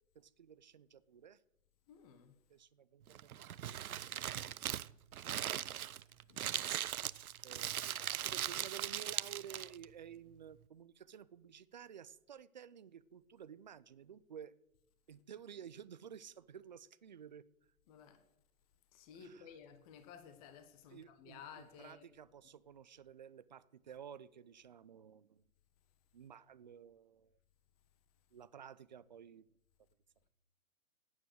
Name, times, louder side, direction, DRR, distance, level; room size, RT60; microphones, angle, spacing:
voice 1, 0.1-1.4 2.5-4.8 7.4-14.5 15.1-17.4 19.1-19.5 20.9-25.4 26.1-27.4 28.3-29.5, right 8 dB, 35° right, 0.4 m, -53 dB
voice 2, 1.9-2.4 6.3-6.8 17.9-18.3 18.9-22.0, left 7 dB, 25° left, 1.4 m, -55 dB
Crumpling crinkling, 3.1-9.9, right 10 dB, 80° right, 0.7 m, -39 dB
15.0 x 9.6 x 6.3 m
hypercardioid pair, 150°, 43 cm